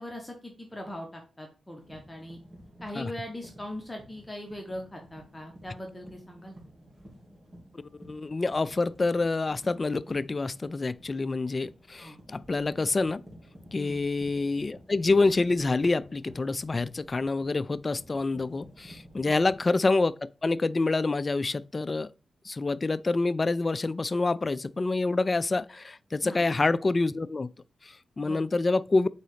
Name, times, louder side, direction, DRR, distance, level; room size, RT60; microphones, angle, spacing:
voice 1, 0.0-2.4 2.8-6.5 12.0-12.2 13.8-14.0 19.2-19.4 26.2-26.5 28.2-28.4, left 1 dB, 15° left, 1.4 m, -40 dB
sound 1, 1.8-19.7, equal, 30° right, 3.0 m, -52 dB
voice 2, 8.0-13.2 13.7-22.1 22.4-27.5 28.2-29.1, left 3 dB, 40° left, 0.3 m, -27 dB
4.7 x 4.0 x 5.0 m
cardioid pair, 50°, 0 cm